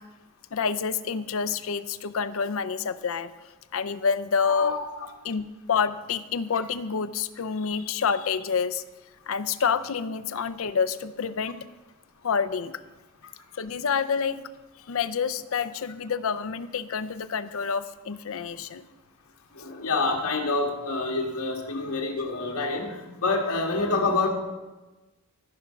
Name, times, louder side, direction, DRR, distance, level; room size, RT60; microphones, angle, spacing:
voice 1, 0.5-3.3 3.7-4.8 5.2-8.8 9.3-11.6 12.2-12.7 13.6-14.4 14.9-18.8, left 6 dB, 65° left, 0.5 m, -28 dB
voice 2, 4.4-5.1 19.5-24.3, left 3 dB, 85° left, 1.9 m, -27 dB
14.5 x 6.0 x 5.7 m
head